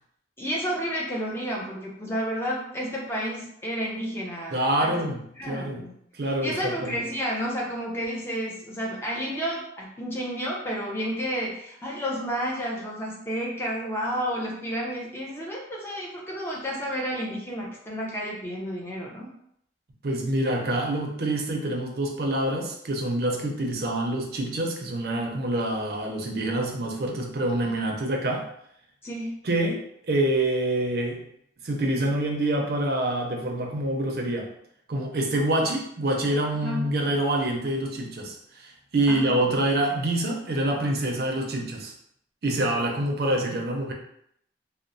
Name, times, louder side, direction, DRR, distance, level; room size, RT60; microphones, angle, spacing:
voice 1, 0.4-5.1 5.4-5.9 6.4-19.3 29.0-29.3 36.6-36.8 39.1-39.3, equal, 15° left, -4 dB, 0.5 m, -31 dB
voice 2, 4.5-5.8 6.1-7.0 20.0-28.5 29.4-31.2 31.6-34.5 34.9-41.9 42.4-43.9, right 1 dB, 55° right, 1 dB, 0.5 m, -26 dB
2.9 x 2.0 x 2.5 m, 0.71 s
head